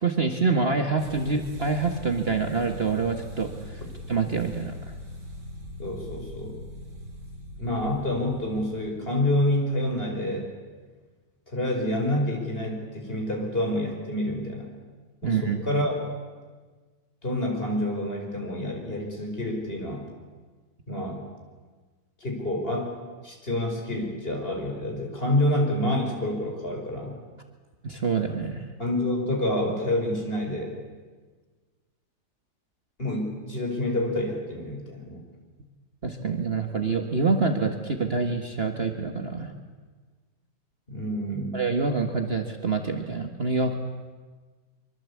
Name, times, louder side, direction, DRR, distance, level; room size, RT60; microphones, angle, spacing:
voice 1, 0.0-3.8 4.1-4.9 15.2-15.6 27.8-28.7 36.0-39.5 41.5-43.7, right 4 dB, 35° right, 5 dB, 1.8 m, -26 dB
sound 1, 1.0-8.9, left 1 dB, 80° right, 5.3 m, -41 dB
voice 2, 5.8-6.6 7.6-10.5 11.5-14.7 15.2-16.0 17.2-20.0 20.9-21.2 22.2-22.9 23.2-27.2 28.8-30.7 33.0-35.2 40.9-41.6, left 1 dB, 35° left, 1 dB, 5.4 m, -28 dB
24.5 x 24.0 x 8.5 m, 1.4 s
omnidirectional pair, 1.8 m